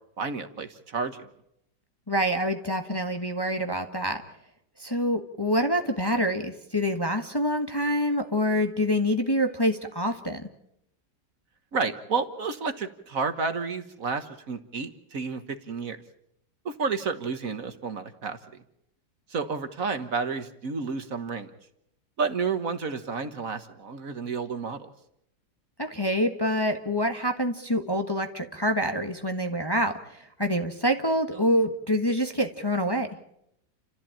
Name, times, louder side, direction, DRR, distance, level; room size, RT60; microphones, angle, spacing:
voice 1, 0.2-1.3 11.7-16.0 16.6-18.6 19.3-21.5 22.2-24.9, right 5 dB, 55° right, 9 dB, 1.7 m, -31 dB
voice 2, 2.1-4.2 4.8-10.4 25.8-33.1, equal, 15° left, 5 dB, 1.4 m, -26 dB
29.5 x 14.5 x 8.9 m, 0.79 s
omnidirectional pair, 1.8 m